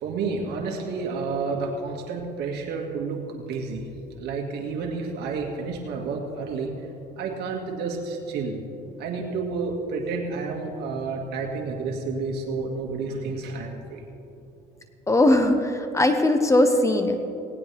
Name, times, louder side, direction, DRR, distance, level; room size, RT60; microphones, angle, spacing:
voice 1, 0.0-3.9 4.2-6.9 7.2-8.6 9.0-14.0, right 4 dB, 80° right, 1 dB, 2.1 m, -30 dB
voice 2, 15.1-17.2, left 1 dB, 15° left, 6 dB, 1.1 m, -20 dB
18.5 x 18.0 x 3.5 m, 2.9 s
cardioid pair, 110°, 17 cm